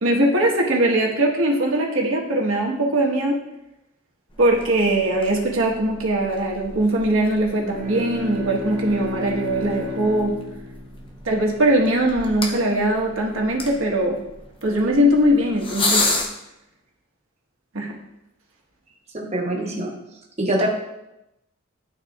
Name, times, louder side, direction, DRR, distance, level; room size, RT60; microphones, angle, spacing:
voice 1, 0.0-3.4 4.4-10.4 11.2-14.2 14.6-16.1 17.7-18.0, right 1 dB, 75° right, -1 dB, 1.3 m, -21 dB
sound 1, 4.3-16.3, left 2 dB, 25° left, 0.7 m, -32 dB
Bowed string instrument, 7.5-12.1, left 3 dB, 50° right, 1.3 m, -33 dB
voice 2, 19.1-20.0 20.4-20.7, right 1 dB, 30° right, -1 dB, 1.0 m, -24 dB
11.5 x 4.0 x 2.4 m, 0.91 s
head